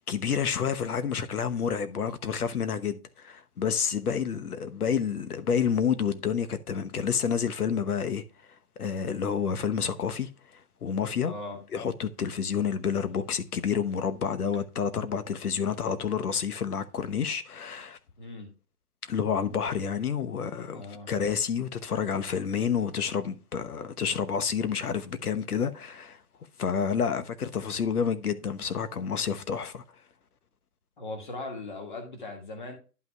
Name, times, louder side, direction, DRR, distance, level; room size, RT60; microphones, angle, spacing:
voice 1, 0.0-11.3 11.7-18.0 19.0-26.2 26.6-29.8, left 7 dB, 80° left, 1.1 m, -29 dB
voice 2, 11.2-11.6 18.2-18.5 20.7-21.1 31.0-32.7, left 2 dB, 35° left, 1.8 m, -39 dB
11.5 x 5.7 x 2.3 m
hypercardioid pair, 180°, 45 cm